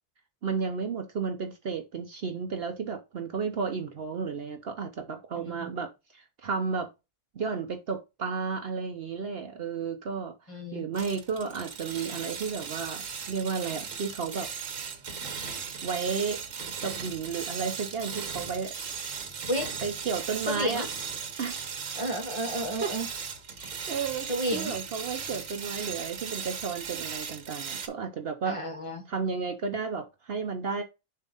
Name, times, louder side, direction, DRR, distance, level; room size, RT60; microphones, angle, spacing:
voice 1, 0.4-6.9 7.3-14.5 15.8-16.4 16.8-18.7 19.8-20.9 21.4-21.7 22.3-22.5 22.8-22.9 23.6-28.6 29.1-30.8, right 5 dB, 55° right, 0.9 m, -33 dB
voice 2, 5.3-5.7 10.5-10.8 19.5-19.8 20.5-20.9 21.9-23.1 24.3-24.8 28.5-29.0, equal, 25° left, 1.3 m, -32 dB
sound 1, 10.9-27.9, right 6 dB, 80° right, 1.4 m, -37 dB
7.0 x 2.8 x 5.3 m
omnidirectional pair, 1.3 m